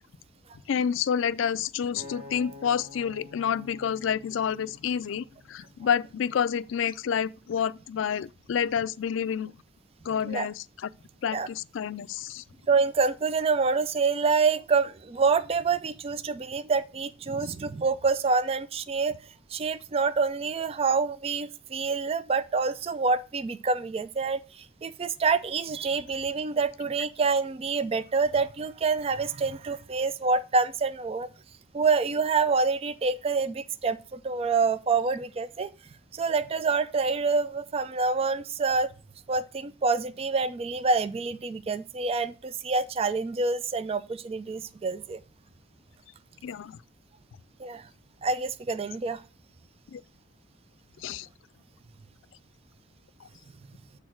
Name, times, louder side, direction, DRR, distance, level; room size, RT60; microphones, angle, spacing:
voice 1, 0.7-9.6 10.0-10.9 11.2-12.4 46.4-46.8 49.9-50.0 51.0-51.3 53.2-53.3, left 8 dB, 75° left, 0.4 m, -29 dB
Acoustic guitar, 2.0-6.3 6.9-7.2, left 2 dB, 90° right, 2.0 m, -49 dB
voice 2, 12.7-19.2 19.5-31.3 31.7-35.7 36.1-38.9 39.3-45.2 47.6-47.9 48.2-49.2, right 4 dB, 30° right, 0.3 m, -27 dB
6.4 x 3.9 x 6.0 m
head